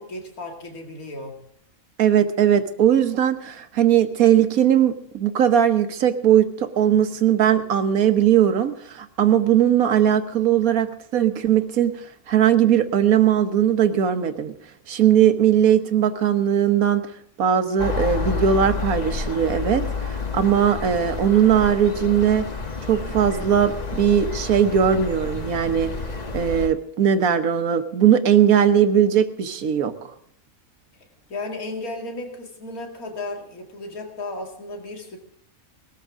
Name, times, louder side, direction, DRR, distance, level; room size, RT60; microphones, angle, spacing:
voice 1, 0.1-1.4 31.3-35.2, left 2 dB, 80° left, 1 dB, 2.7 m, -34 dB
voice 2, 2.0-11.9 12.3-14.5 14.9-17.0 17.4-19.8 20.1-22.5 22.9-25.9 26.3-29.9, right 9 dB, 80° right, 9 dB, 1.5 m, -19 dB
sound 1, 17.8-26.7, left 4 dB, 30° left, 1.2 m, -29 dB
19.5 x 13.5 x 3.7 m, 0.69 s
omnidirectional pair, 1.5 m